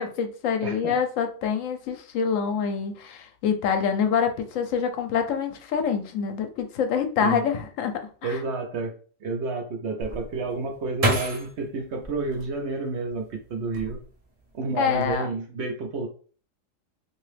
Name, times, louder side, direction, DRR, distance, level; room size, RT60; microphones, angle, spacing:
voice 1, 0.0-8.4 14.8-15.3, left 7 dB, 75° left, 7 dB, 0.9 m, -26 dB
voice 2, 0.6-0.9 7.2-7.5 8.2-8.9 9.2-14.0 14.5-16.1, right 3 dB, 65° right, 3 dB, 0.8 m, -30 dB
sound 1, 10.0-13.1 13.6-14.4 14.7-15.1, right 1 dB, 35° right, 0.7 m, -30 dB
2.8 x 2.6 x 3.2 m, 0.41 s
omnidirectional pair, 1.4 m